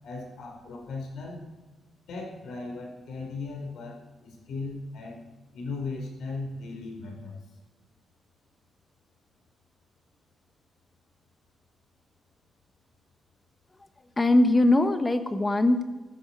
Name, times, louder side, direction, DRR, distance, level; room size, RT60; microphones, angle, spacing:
voice 1, 0.0-1.4 2.1-5.2 5.5-7.4, left 3 dB, 80° left, 0 dB, 5.0 m, -37 dB
voice 2, 14.2-15.8, left 1 dB, 20° left, 8 dB, 1.2 m, -21 dB
14.5 x 13.0 x 4.8 m, 1.3 s
cardioid pair, 125°, 0 cm